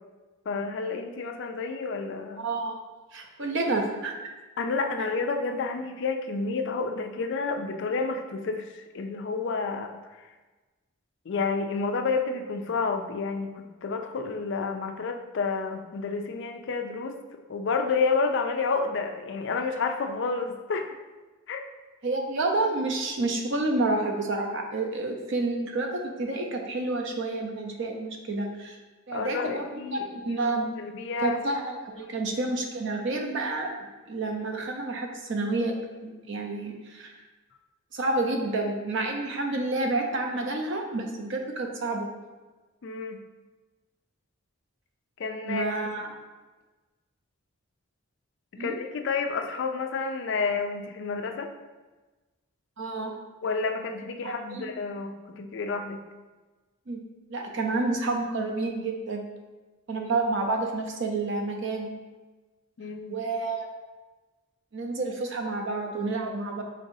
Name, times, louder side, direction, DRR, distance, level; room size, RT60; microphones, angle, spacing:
voice 1, 0.5-2.5 4.6-9.9 11.3-17.2 17.5-21.0 21.5-21.6 29.1-30.1 30.4-30.5 30.8-31.4 42.8-43.2 45.2-45.7 48.5-51.5 53.4-56.0 62.8-63.2, left 4 dB, 55° left, 5 dB, 0.4 m, -30 dB
voice 2, 2.4-2.8 3.1-4.1 22.0-28.8 29.1-30.7 31.2-37.1 37.9-42.1 45.5-46.1 48.6-48.8 52.8-53.1 54.2-54.7 56.9-57.0 57.3-59.2 59.9-61.9 63.1-63.7 64.7-66.6, right 2 dB, 55° right, 2 dB, 0.6 m, -29 dB
5.2 x 3.8 x 2.7 m, 1.2 s
head